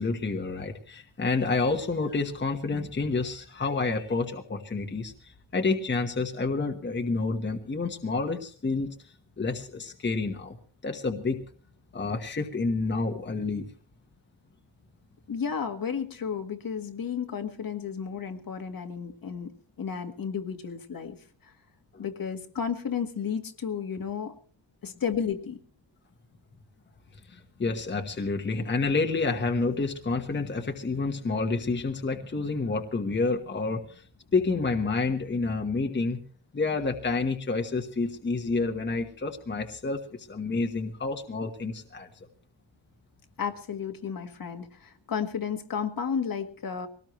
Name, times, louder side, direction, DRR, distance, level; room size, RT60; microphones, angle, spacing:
voice 1, 0.0-8.9 9.4-10.6 10.8-11.4 11.9-13.7 21.9-22.0 27.3-34.0 34.3-36.2 36.5-42.1, left 3 dB, 25° left, 3 dB, 1.3 m, -29 dB
voice 2, 15.3-21.2 21.4-21.5 22.0-24.4 24.8-25.6 43.4-46.9, left 7 dB, 50° left, 6 dB, 1.6 m, -32 dB
21.5 x 18.5 x 3.1 m, 0.43 s
wide cardioid pair, 175°, 45 cm